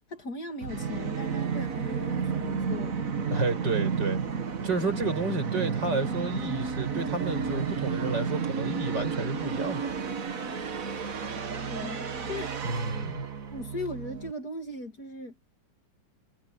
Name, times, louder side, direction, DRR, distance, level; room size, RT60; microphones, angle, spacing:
voice 1, 0.1-3.0 11.7-12.0 12.3-12.6 13.2-15.3, left 2 dB, 55° left, 3.0 m, -38 dB
Musical instrument, 0.6-14.3, right 6 dB, 50° right, 1.8 m, -32 dB
voice 2, 3.3-4.2 4.6-9.9 12.6-13.3, right 3 dB, 65° right, 6.8 m, -31 dB
omnidirectional pair, 2.0 m